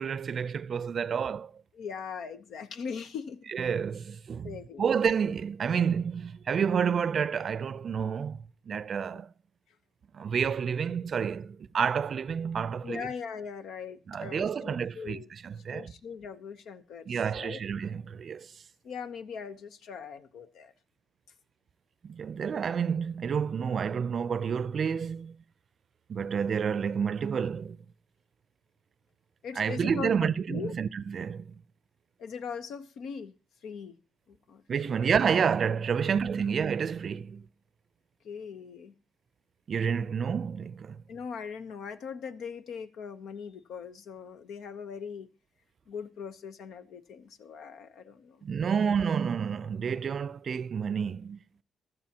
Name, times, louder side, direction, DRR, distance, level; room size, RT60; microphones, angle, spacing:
voice 1, 0.0-1.5 3.5-4.5 4.8-8.4 8.7-9.3 10.1-13.1 14.1-15.9 17.1-18.5 22.0-25.3 26.1-27.8 29.6-31.5 34.7-37.4 39.7-41.0 48.4-51.6, right 7 dB, 55° right, 0.5 m, -29 dB
voice 2, 1.7-3.5 4.4-4.9 9.1-9.2 12.8-15.3 15.7-17.6 18.8-20.7 29.4-30.8 32.2-33.4 33.6-34.0 34.3-35.0 36.0-36.1 38.2-38.9 41.1-45.3 45.9-48.4, left 6 dB, 75° left, 0.8 m, -40 dB
15.0 x 12.5 x 2.9 m
supercardioid pair, 60°, 0 cm